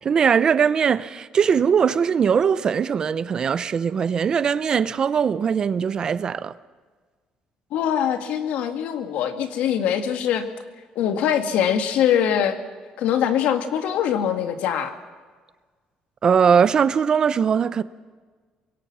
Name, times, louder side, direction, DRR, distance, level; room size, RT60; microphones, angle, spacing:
voice 1, 0.0-6.5 16.2-17.8, right 7 dB, 35° right, 0.6 m, -20 dB
voice 2, 7.7-10.5 11.0-12.6 13.0-15.0, left 9 dB, 85° left, 2.2 m, -23 dB
25.5 x 22.5 x 6.2 m
cardioid pair, 160°, 2 cm